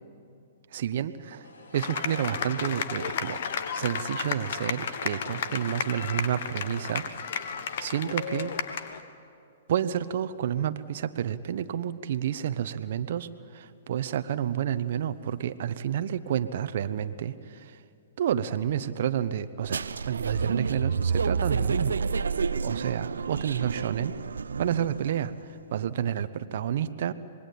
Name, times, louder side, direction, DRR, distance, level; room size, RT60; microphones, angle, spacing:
voice 1, 0.7-1.5 1.7-3.4 3.7-8.5 9.7-17.8 18.2-22.0 22.6-24.1 24.6-27.1, right 10 dB, 60° right, 12 dB, 0.9 m, -30 dB
sound 1, 1.4-7.9, left 2 dB, 80° left, 3.0 m, -52 dB
sound 2, 1.7-9.0, left 7 dB, 60° left, 1.4 m, -33 dB
sound 3, 19.6-25.2, right 5 dB, 85° right, 0.7 m, -29 dB
26.0 x 21.0 x 8.6 m, 2.5 s
hypercardioid pair, 125°, 0 cm